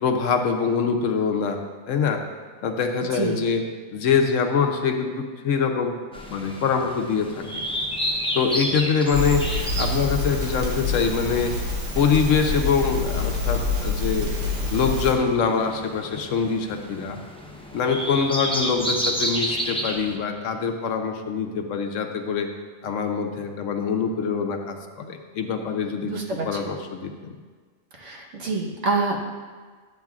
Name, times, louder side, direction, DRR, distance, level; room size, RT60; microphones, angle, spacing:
voice 1, 0.0-1.6 1.9-2.2 2.6-3.6 3.9-6.0 6.3-7.5 8.3-9.4 9.8-11.5 11.9-14.3 14.7-17.2 17.7-22.5 22.8-26.1 26.4-27.3, left 6 dB, 80° left, 4 dB, 1.1 m, -24 dB
voice 2, 3.1-3.4 26.0-26.7 28.0-29.2, right 3 dB, 70° right, 0 dB, 1.4 m, -27 dB
sound 1, 6.1-20.2, equal, 5° left, 0.5 m, -32 dB
Crackle, 9.1-15.2, left 2 dB, 90° right, 1.8 m, -27 dB
12.0 x 8.1 x 2.4 m, 1.5 s
omnidirectional pair, 1.3 m